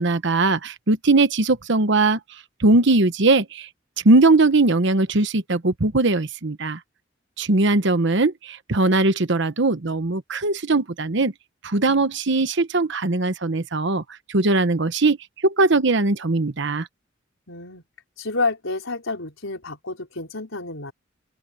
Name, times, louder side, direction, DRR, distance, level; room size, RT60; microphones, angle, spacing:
voice 1, 0.0-2.2 2.6-3.7 4.0-6.8 7.4-11.3 11.6-14.0 14.3-15.2 15.4-16.9, right 2 dB, 65° right, 1.1 m, -20 dB
voice 2, 17.5-17.8 18.2-20.9, left 3 dB, 85° left, 4.6 m, -29 dB
open air
head